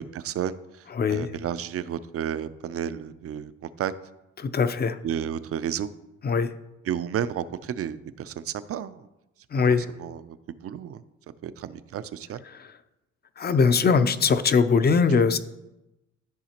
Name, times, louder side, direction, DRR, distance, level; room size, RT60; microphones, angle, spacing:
voice 1, 0.1-3.9 5.0-5.9 6.8-9.1 9.8-11.0 11.4-12.4, right 9 dB, 50° right, 15 dB, 0.5 m, -32 dB
voice 2, 4.4-5.0 6.2-6.5 9.5-9.9 13.4-15.4, left 5 dB, 35° left, 11 dB, 0.5 m, -21 dB
13.0 x 4.9 x 2.9 m, 0.96 s
cardioid pair, 90°, 30 cm